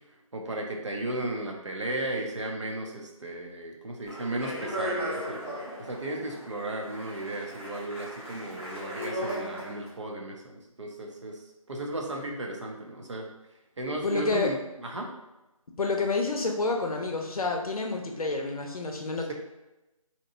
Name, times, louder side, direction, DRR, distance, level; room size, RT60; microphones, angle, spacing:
voice 1, 0.3-5.4 5.8-13.3 13.8-15.1, right 1 dB, 55° right, 0 dB, 0.6 m, -35 dB
Speech, 4.1-9.9, equal, 20° left, 0.6 m, -36 dB
voice 2, 14.0-14.6 15.8-19.3, left 3 dB, 80° left, 2 dB, 0.6 m, -29 dB
2.8 x 2.2 x 2.6 m, 1.0 s
figure-of-eight pair, 170°, 18 cm